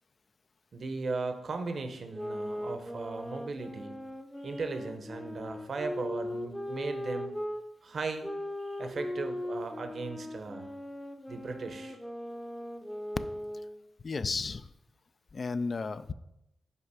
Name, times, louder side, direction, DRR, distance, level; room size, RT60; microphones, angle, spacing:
voice 1, 0.7-4.0 4.4-7.3 7.8-8.3 8.6-10.7 11.3-12.0, right 3 dB, 60° right, 7 dB, 0.8 m, -37 dB
sound 1, 2.0-7.6 8.2-13.8, left 1 dB, 15° left, 0.6 m, -39 dB
voice 2, 14.0-14.7 15.3-16.1, left 4 dB, 50° left, 13 dB, 0.3 m, -33 dB
5.5 x 4.7 x 4.8 m, 0.87 s
supercardioid pair, 45°, 0 cm